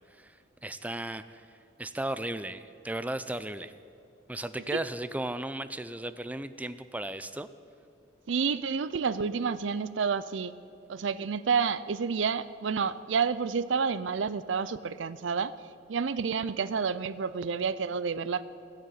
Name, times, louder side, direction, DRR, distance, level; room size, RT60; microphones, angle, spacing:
voice 1, 0.6-1.5 1.8-3.7 4.3-7.5, right 1 dB, 10° right, 13 dB, 0.4 m, -35 dB
voice 2, 8.3-10.5 10.9-15.5 15.9-18.4, right 5 dB, 75° right, 16 dB, 0.5 m, -29 dB
15.0 x 6.6 x 9.2 m, 2.4 s
head